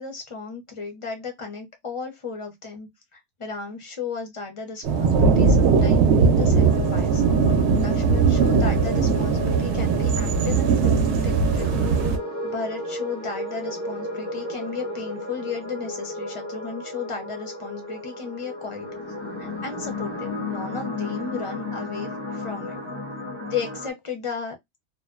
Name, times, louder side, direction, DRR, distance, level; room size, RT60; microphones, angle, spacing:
voice 1, 0.0-7.2 7.8-11.8 12.4-18.9 19.4-22.8 23.4-24.6, left 5 dB, 40° left, 0.5 m, -34 dB
sound 1, 4.8-12.2, right 5 dB, 70° right, 0.8 m, -19 dB
sound 2, 6.6-23.9, left 1 dB, 5° left, 0.9 m, -33 dB
2.5 x 2.1 x 2.3 m
omnidirectional pair, 1.3 m